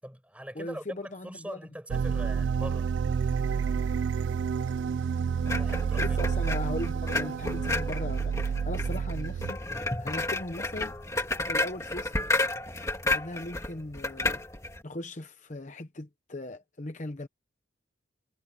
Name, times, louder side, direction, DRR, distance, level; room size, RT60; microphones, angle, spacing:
voice 1, 0.0-2.9 5.5-6.2, equal, 5° right, 7.0 m, -42 dB
voice 2, 0.6-1.6 6.0-10.9 11.5-12.3 13.0-14.4 14.8-17.3, left 1 dB, 40° left, 0.9 m, -38 dB
sound 1, 1.9-9.5, right 6 dB, 70° right, 0.3 m, -29 dB
sound 2, 5.4-14.8, left 2 dB, 15° left, 2.0 m, -32 dB
head